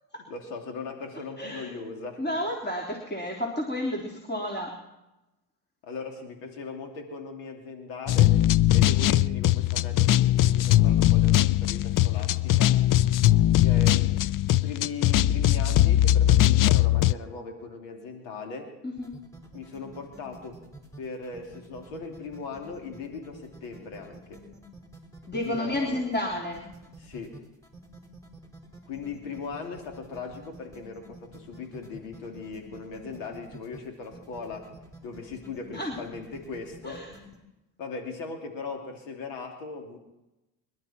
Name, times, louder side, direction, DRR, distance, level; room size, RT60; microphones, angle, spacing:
voice 1, 0.3-2.4 5.8-8.4 8.7-12.8 13.6-14.2 14.5-18.7 19.5-20.6 21.0-24.4 25.3-26.0 27.0-27.4 28.9-34.7 35.0-37.0 37.8-40.0, left 4 dB, 80° left, 3 dB, 3.1 m, -39 dB
voice 2, 1.4-1.7 2.2-4.8 18.8-19.1 25.3-26.7 35.7-36.0 36.8-37.2, left 1 dB, 20° left, -1 dB, 3.4 m, -31 dB
sound 1, 8.1-17.1, left 14 dB, 45° left, 0.6 m, -20 dB
sound 2, 19.0-37.4, right 2 dB, 5° left, 5.0 m, -48 dB
26.5 x 12.0 x 4.4 m, 0.96 s
supercardioid pair, 70°, 45 cm